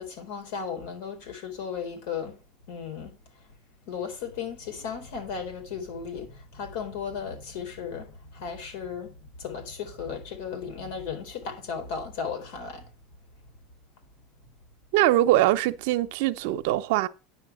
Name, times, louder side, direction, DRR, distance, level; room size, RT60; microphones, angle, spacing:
voice 1, 0.0-2.4 2.7-3.1 3.4-3.5 3.9-12.9, left 6 dB, 75° left, 3.9 m, -35 dB
voice 2, 14.9-17.1, right 15 dB, 70° right, 0.8 m, -22 dB
9.9 x 5.9 x 6.2 m
supercardioid pair, 130°, 0 cm